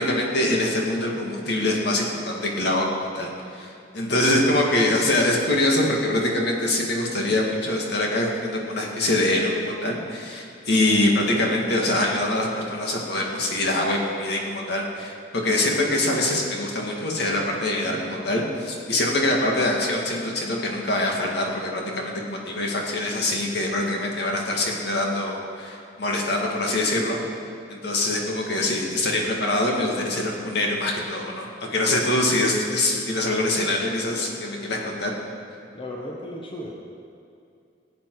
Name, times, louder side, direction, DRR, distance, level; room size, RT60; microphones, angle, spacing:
voice 1, 0.0-2.9 3.1-27.2 27.7-35.1, left 1 dB, 65° left, -1 dB, 2.0 m, -24 dB
voice 2, 35.7-36.7, left 1 dB, 30° left, -1 dB, 1.1 m, -35 dB
17.0 x 8.5 x 4.8 m, 2.5 s
head